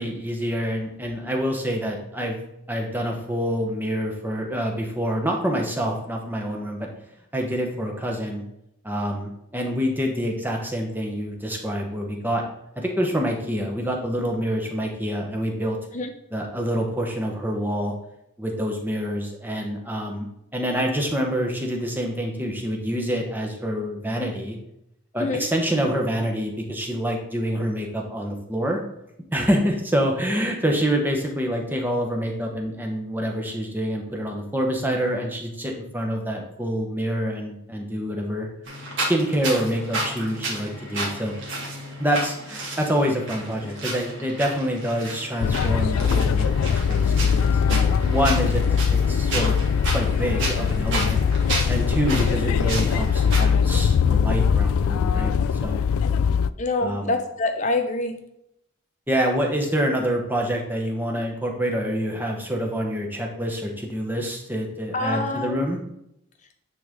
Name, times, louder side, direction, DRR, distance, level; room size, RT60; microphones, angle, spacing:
voice 1, 0.0-2.4 2.7-6.9 7.3-8.4 8.8-12.4 12.8-15.8 16.3-17.9 18.4-20.3 20.5-24.6 25.1-28.8 29.3-38.5 39.0-41.3 42.0-47.4 47.7-48.6 48.9-49.6 49.9-51.2 51.5-55.8 56.8-57.1 59.1-65.8, equal, 10° right, 1 dB, 1.0 m, -26 dB
sound 1, 38.7-53.5, right 2 dB, 60° right, 2.1 m, -32 dB
sound 2, 45.4-56.5, left 6 dB, 85° left, 0.3 m, -21 dB
voice 2, 56.6-58.2 64.9-65.7, left 2 dB, 35° left, 6 dB, 0.8 m, -26 dB
9.3 x 3.9 x 3.6 m, 0.80 s
head